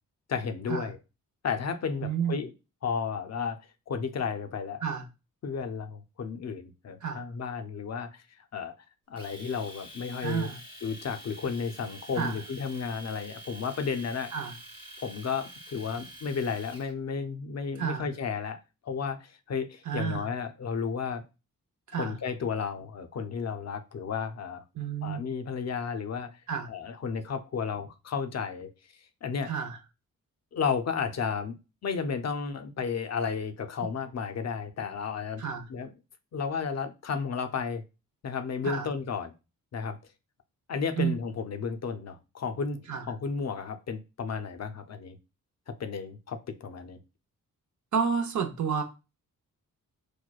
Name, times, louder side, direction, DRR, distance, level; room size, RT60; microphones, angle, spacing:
voice 1, 0.3-1.0 1.4-2.5 2.8-3.6 3.9-4.8 5.4-8.2 8.5-8.7 9.1-10.5 10.8-14.3 15.0-21.2 22.0-24.6 25.0-26.3 26.7-28.7 29.2-29.5 30.5-31.6 31.8-35.4 35.7-35.9 36.3-37.8 38.2-39.3 39.7-40.0 40.7-45.2 45.7-47.0, left 6 dB, 50° left, 0.5 m, -33 dB
voice 2, 2.0-2.4 4.8-5.1 7.0-7.3 10.2-10.6 12.2-12.4 14.3-14.5 17.8-18.0 19.9-20.3 21.9-22.2 24.8-25.3 26.5-26.7 29.5-29.8 35.4-35.7 38.6-38.9 41.0-41.2 42.9-43.1 47.9-48.8, right 7 dB, 55° right, 0.7 m, -30 dB
Domestic sounds home sounds, 9.2-16.9, right 1 dB, 15° right, 0.8 m, -47 dB
4.5 x 2.1 x 2.3 m
cardioid pair, 90°, 34 cm